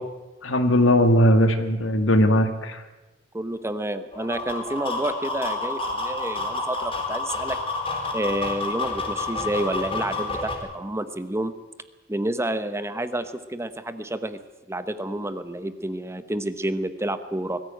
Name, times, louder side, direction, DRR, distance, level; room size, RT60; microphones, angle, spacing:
voice 1, 0.4-2.8, equal, 75° left, 8 dB, 2.0 m, -19 dB
voice 2, 3.3-7.6 8.1-11.5 12.1-14.4 14.7-17.6, right 1 dB, 15° right, 11 dB, 1.0 m, -29 dB
sound 1, 4.1-10.6, left 3 dB, 30° left, 4.5 m, -29 dB
21.5 x 14.5 x 9.2 m, 1.1 s
head